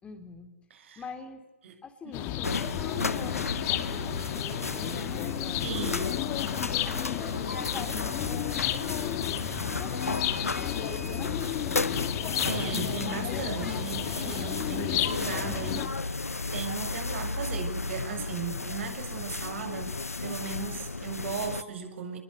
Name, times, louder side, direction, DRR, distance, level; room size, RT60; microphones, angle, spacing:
voice 1, 0.0-0.5 1.0-1.4 1.8-6.4 6.8-12.1, left 4 dB, 15° left, 7 dB, 3.0 m, -45 dB
voice 2, 0.7-1.0 1.6-1.7 2.0-2.1 5.6-6.4 12.5-16.2 16.5-22.2, right 6 dB, 60° right, 7 dB, 7.3 m, -37 dB
sound 1, 2.1-15.9, left 13 dB, 30° left, 2.2 m, -32 dB
sound 2, 2.4-21.6, left 3 dB, 90° left, 1.2 m, -34 dB
29.5 x 22.0 x 8.2 m, 1.0 s
figure-of-eight pair, 125°, 8 cm